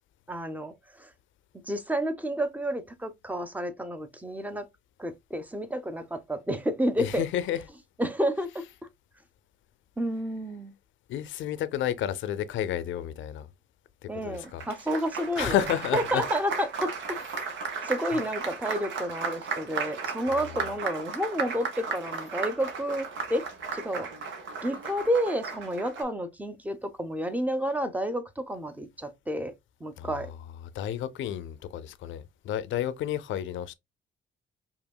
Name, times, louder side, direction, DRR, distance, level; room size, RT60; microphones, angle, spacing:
voice 1, 0.3-1.1 1.5-4.7 5.0-7.2 8.0-8.6 10.0-10.7 14.1-15.6 15.9-17.5 17.8-23.4 23.7-24.1 24.6-29.5 29.8-30.3, equal, 10° right, 0.7 m, -30 dB
voice 2, 7.0-7.6 11.1-13.5 14.0-14.6 15.4-16.2 20.4-20.5 30.0-30.3 30.7-33.7, left 10 dB, 75° left, 0.5 m, -31 dB
Applause, 14.3-26.0, right 5 dB, 70° right, 1.1 m, -35 dB
4.9 x 2.9 x 2.2 m
cardioid pair, 90°, 20 cm